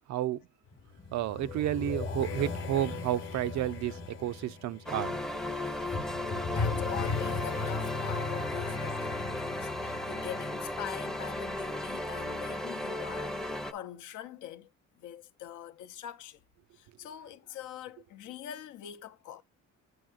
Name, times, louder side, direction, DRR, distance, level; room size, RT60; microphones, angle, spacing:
voice 1, 0.1-0.4 1.1-5.2, right 12 dB, 65° right, 0.4 m, -31 dB
sound 1, 0.7-11.4, left 4 dB, 45° left, 0.9 m, -37 dB
sound 2, 4.9-13.7, left 1 dB, ahead, 0.5 m, -35 dB
voice 2, 6.5-14.7 15.0-16.4 16.7-19.4, left 10 dB, 80° left, 0.7 m, -44 dB
7.8 x 5.5 x 2.4 m
cardioid pair, 90°, 30 cm